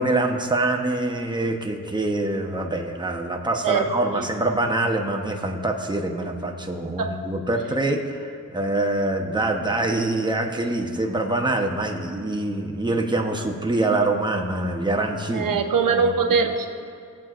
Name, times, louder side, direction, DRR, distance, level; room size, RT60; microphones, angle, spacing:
voice 1, 0.0-15.5 15.9-16.4, right 2 dB, 15° right, 2 dB, 0.9 m, -25 dB
voice 2, 15.3-16.7, right 5 dB, 85° right, 5 dB, 0.9 m, -22 dB
21.5 x 7.5 x 2.5 m, 2.4 s
wide cardioid pair, 100°, 32 cm